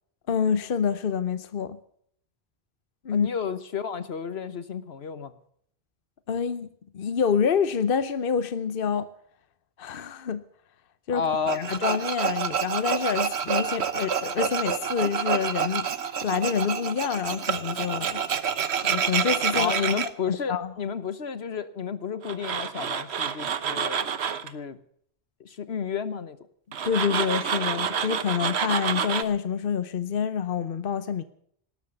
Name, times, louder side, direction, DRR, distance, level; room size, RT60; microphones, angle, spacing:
voice 1, 0.3-1.8 3.0-3.3 6.3-6.7 6.9-9.1 9.8-10.4 11.1-11.2 11.5-18.5 18.8-19.7 20.3-20.7 26.8-31.2, left 7 dB, 60° left, 1.0 m, -27 dB
voice 2, 3.1-5.3 11.1-11.7 19.5-24.1 24.4-24.8 25.4-26.4, left 6 dB, 75° left, 1.4 m, -31 dB
Tools, 11.5-20.1 22.2-24.5 26.7-29.2, right 7 dB, 90° right, 1.2 m, -28 dB
19.0 x 13.0 x 5.3 m
omnidirectional pair, 1.1 m